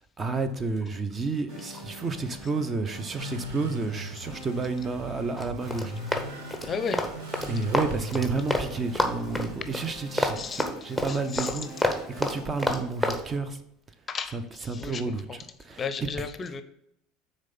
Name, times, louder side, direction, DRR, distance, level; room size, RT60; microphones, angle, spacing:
voice 1, 0.2-5.9 6.6-6.7 7.5-13.6 14.3-14.4 14.7-15.8, right 4 dB, 25° right, 10 dB, 0.7 m, -31 dB
sound 1, 1.5-12.4, right 1 dB, 60° right, 3.0 m, -46 dB
sound 2, 3.2-11.5, equal, 75° right, 1.0 m, -40 dB
Run, 5.4-8.7 8.9-13.2, left 1 dB, 5° right, 1.1 m, -28 dB
voice 2, 6.6-7.0 9.6-9.7 10.4-10.7 11.1-11.6 14.1-15.0 15.3-15.4 15.8-16.6, left 5 dB, 30° left, 10 dB, 0.6 m, -34 dB
6.4 x 4.1 x 5.5 m, 0.77 s
figure-of-eight pair, 70°, 0 cm